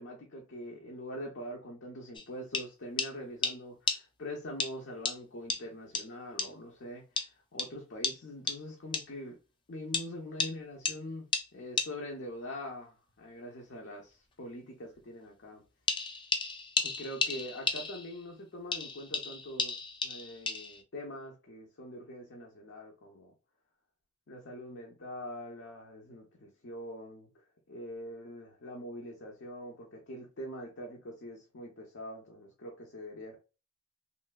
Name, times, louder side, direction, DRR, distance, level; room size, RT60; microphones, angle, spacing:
voice 1, 0.0-9.4 9.7-15.6 16.8-23.3 24.3-33.4, left 1 dB, 60° left, 0.6 m, -44 dB
sound 1, 2.2-2.3 2.5-2.7 3.0-3.1 3.4-3.6 3.9-4.0 4.6-4.7 5.1-5.2 5.5-5.6 6.0-6.1 6.4-6.5 7.2-7.3 7.6-7.7 8.0-8.2 8.5-8.6 8.9-9.1 9.9-10.1 10.4-10.5 10.9-11.0 11.3-11.5 11.8-11.9 15.9-18.2 18.7-20.8, left 4 dB, 25° left, 0.4 m, -33 dB
3.1 x 2.6 x 2.3 m
head